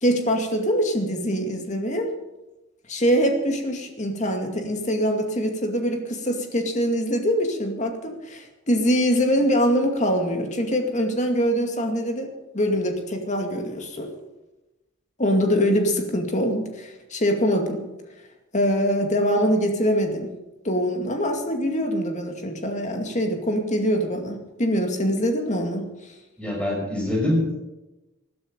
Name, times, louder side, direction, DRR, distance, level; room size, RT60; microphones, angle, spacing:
voice 1, 0.0-2.1 2.9-12.3 12.5-14.1 15.2-17.9 18.5-20.3 20.6-25.9, equal, 35° left, 4 dB, 2.3 m, -23 dB
voice 2, 26.4-27.6, left 1 dB, 5° left, -2 dB, 6.2 m, -24 dB
20.0 x 12.0 x 5.3 m, 1.0 s
head